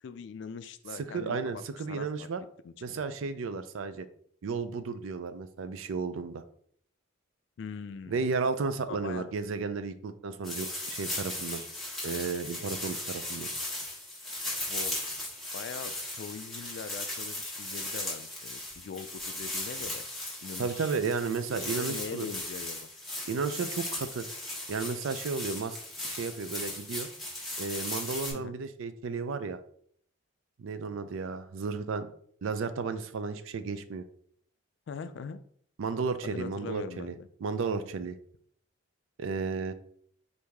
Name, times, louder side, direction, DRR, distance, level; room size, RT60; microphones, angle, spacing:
voice 1, 0.0-2.3 2.6-3.0 7.6-8.3 8.9-9.3 14.6-15.0 15.5-20.1 20.4-21.0 21.5-22.9 28.3-28.6 34.9-35.4 36.2-37.3, left 5 dB, 60° left, 12 dB, 0.3 m, -42 dB
voice 2, 1.1-2.4 2.8-4.1 4.4-6.4 8.1-11.6 12.0-13.5 20.6-22.3 23.3-24.3 24.7-25.8 26.0-27.1 27.6-29.6 30.6-32.1 32.4-34.1 35.8-37.1 37.4-38.2 39.2-39.7, right 4 dB, 75° right, 11 dB, 0.4 m, -33 dB
sound 1, 10.4-28.3, left 1 dB, ahead, 1.1 m, -37 dB
4.7 x 2.6 x 3.4 m, 0.62 s
head